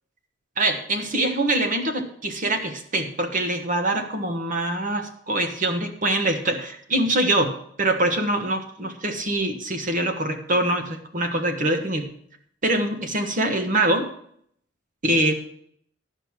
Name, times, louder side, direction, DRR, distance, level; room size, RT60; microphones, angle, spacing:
voice 1, 0.6-12.1 12.6-14.1 15.0-15.3, right 1 dB, 45° right, 5 dB, 1.4 m, -24 dB
12.0 x 5.3 x 7.4 m, 0.65 s
head